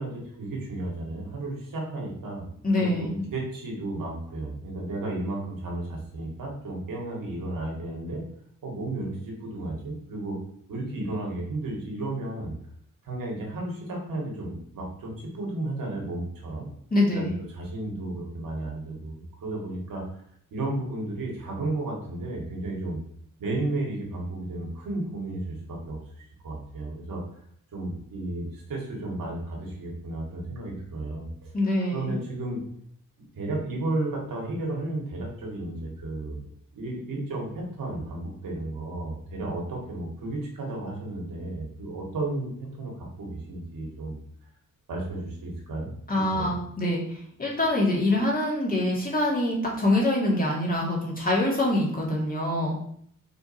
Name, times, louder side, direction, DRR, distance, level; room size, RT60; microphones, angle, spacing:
voice 1, 0.0-2.4 2.8-8.2 8.6-10.4 10.7-12.5 13.0-16.7 17.1-20.2 20.5-23.0 23.4-27.2 27.7-31.5 31.9-32.6 33.3-36.4 36.7-44.2 44.9-46.6, right 2 dB, 85° right, -2 dB, 2.1 m, -33 dB
voice 2, 2.6-3.2 16.9-17.4 31.5-32.2 46.1-52.8, left 1 dB, 25° left, -3 dB, 2.0 m, -25 dB
4.9 x 4.7 x 4.4 m, 0.65 s
wide cardioid pair, 155°, 33 cm